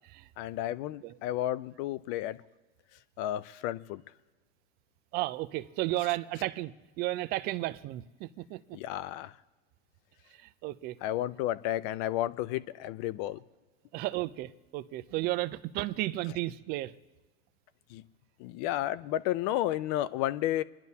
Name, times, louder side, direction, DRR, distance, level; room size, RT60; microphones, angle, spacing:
voice 1, 0.4-2.4 3.2-4.0 8.7-9.4 11.0-13.4 17.9-18.0 18.4-20.6, left 13 dB, 40° left, 0.5 m, -32 dB
voice 2, 5.1-6.7 7.0-8.8 10.4-11.0 13.9-17.0, right 17 dB, 30° right, 0.4 m, -33 dB
28.5 x 10.5 x 2.8 m
supercardioid pair, 140°, 35 cm